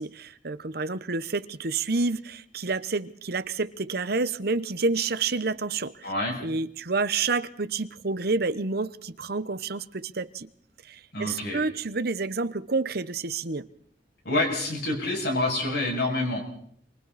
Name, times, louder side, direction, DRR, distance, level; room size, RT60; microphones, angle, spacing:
voice 1, 0.0-6.1 6.4-10.5 10.9-13.7, right 3 dB, 60° right, 1.0 m, -29 dB
voice 2, 6.0-6.4 11.1-11.6 14.2-16.4, left 2 dB, 65° left, 7.2 m, -27 dB
27.5 x 25.0 x 4.2 m
head